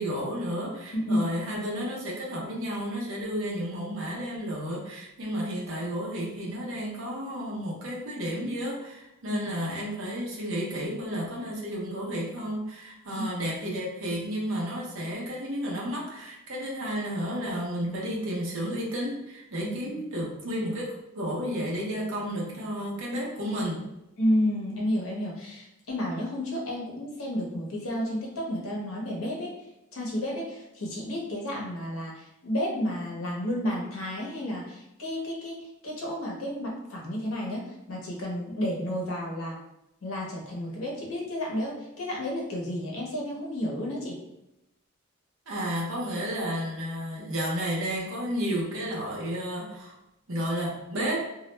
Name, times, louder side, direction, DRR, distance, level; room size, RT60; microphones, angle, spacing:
voice 1, 0.0-23.9 45.5-49.9 50.3-51.2, equal, 70° right, -2 dB, 0.7 m, -32 dB
voice 2, 0.9-1.3 9.3-9.5 13.2-13.3 19.6-19.8 24.2-29.5 29.9-35.6 35.8-39.6 40.0-44.2, left 1 dB, 85° left, -2 dB, 0.7 m, -31 dB
2.2 x 2.0 x 3.1 m, 0.89 s
head